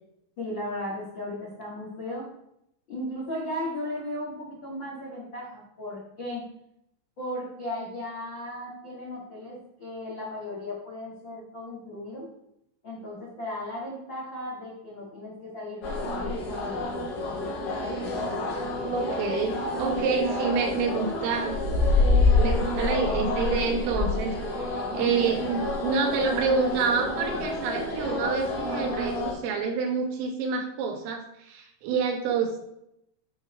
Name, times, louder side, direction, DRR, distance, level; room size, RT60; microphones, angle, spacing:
voice 1, 0.4-2.2 2.9-6.4 7.2-12.3 12.8-17.5, left 1 dB, 75° left, -7 dB, 1.1 m, -36 dB
sound 1, 15.8-29.3, left 2 dB, 55° left, 3.8 m, -27 dB
voice 2, 18.9-21.6 22.4-32.6, right 5 dB, 90° right, 3 dB, 4.0 m, -28 dB
13.0 x 4.8 x 3.4 m, 0.78 s
omnidirectional pair, 5.7 m